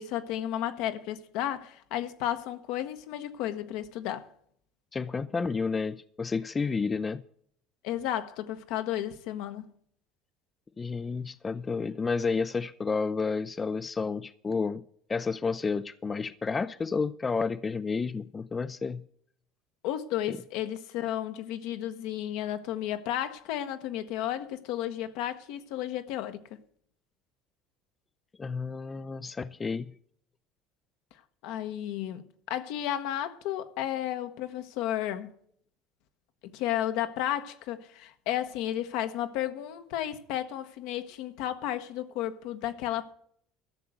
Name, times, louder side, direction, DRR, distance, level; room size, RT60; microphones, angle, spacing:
voice 1, 0.0-4.3 7.8-9.7 19.8-26.4 31.4-35.3 36.4-43.1, left 12 dB, 70° left, 1.1 m, -33 dB
voice 2, 4.9-7.2 10.8-14.8 15.1-19.0 20.3-20.4 28.4-30.0, left 4 dB, 25° left, 0.5 m, -31 dB
13.0 x 6.7 x 7.9 m
supercardioid pair, 95°, 0 cm